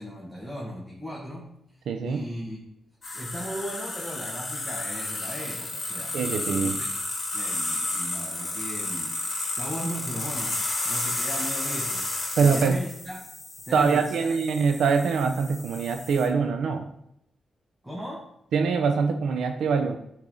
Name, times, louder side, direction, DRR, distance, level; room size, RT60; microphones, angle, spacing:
voice 1, 0.0-1.5 2.0-2.6 3.1-6.2 6.6-6.9 7.3-9.2 9.6-12.1 12.4-13.2 13.7-14.3 17.8-18.3, equal, 10° right, -4 dB, 1.8 m, -37 dB
voice 2, 1.9-2.2 6.1-6.8 12.4-12.8 13.7-16.9 18.5-20.0, right 5 dB, 90° right, 6 dB, 0.7 m, -24 dB
sound 1, 3.0-16.3, left 2 dB, 40° left, 2.6 m, -32 dB
10.5 x 4.7 x 3.9 m, 0.78 s
cardioid pair, 80°, 0 cm